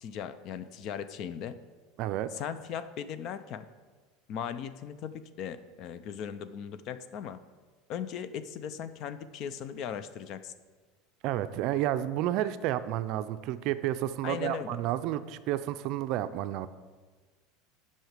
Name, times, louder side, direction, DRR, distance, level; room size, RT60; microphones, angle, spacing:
voice 1, 0.0-1.5 2.3-3.7 4.3-7.4 7.9-10.5 14.2-14.8, left 8 dB, 45° left, 13 dB, 0.5 m, -38 dB
voice 2, 2.0-2.3 11.2-16.7, right 13 dB, 55° right, 12 dB, 0.4 m, -31 dB
7.8 x 5.6 x 6.6 m, 1.4 s
supercardioid pair, 140°, 0 cm